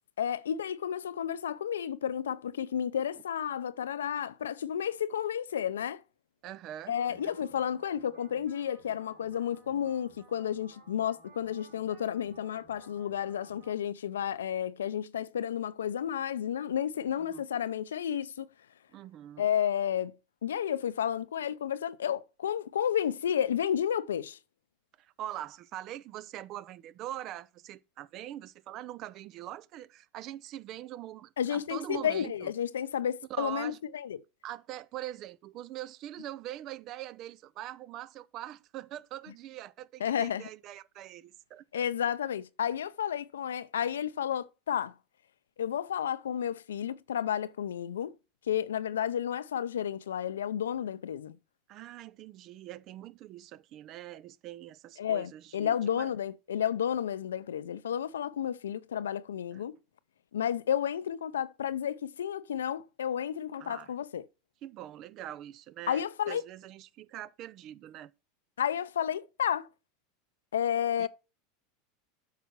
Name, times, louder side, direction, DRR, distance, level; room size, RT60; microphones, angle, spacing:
voice 1, 0.2-6.0 6.9-18.5 19.4-20.2 20.4-24.4 31.4-34.2 40.0-40.5 41.7-44.9 45.6-48.1 48.5-51.4 55.0-59.8 60.3-64.3 65.9-66.4 68.6-69.7 70.5-71.1, left 9 dB, 85° left, 0.5 m, -31 dB
voice 2, 6.4-7.3 17.1-17.4 18.9-19.5 25.0-32.5 33.3-33.8 34.4-41.8 51.7-56.1 59.5-59.6 63.6-63.9 64.6-68.1 71.0-71.1, right 13 dB, 50° right, 0.6 m, -43 dB
sound 1, 6.9-13.7, right 2 dB, 80° right, 3.8 m, -58 dB
8.2 x 5.7 x 4.5 m
hypercardioid pair, 95°, 0 cm